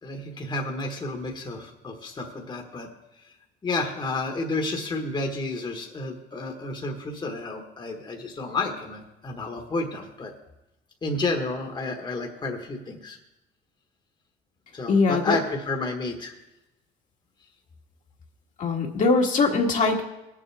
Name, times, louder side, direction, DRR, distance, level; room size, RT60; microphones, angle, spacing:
voice 1, 0.0-2.9 3.2-3.3 3.6-10.3 11.0-13.2 14.7-16.3, left 2 dB, 25° left, 2 dB, 1.3 m, -31 dB
voice 2, 14.9-15.3 18.6-20.0, left 4 dB, 50° left, 1 dB, 1.5 m, -21 dB
19.0 x 7.2 x 3.4 m, 0.95 s
cardioid pair, 110°, 17 cm